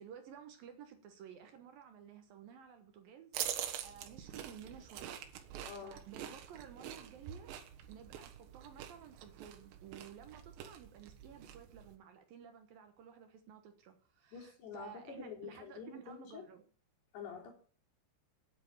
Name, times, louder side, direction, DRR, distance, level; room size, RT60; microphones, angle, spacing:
voice 1, 0.0-5.2 5.8-7.5 7.9-16.7, right 8 dB, 65° right, 7 dB, 2.6 m, -54 dB
sound 1, 3.3-12.0, right 10 dB, 85° right, 3.6 m, -45 dB
voice 2, 5.6-6.0 14.3-16.4 17.1-17.5, left 6 dB, 75° left, 1 dB, 5.4 m, -47 dB
10.0 x 8.4 x 9.0 m, 0.42 s
omnidirectional pair, 5.0 m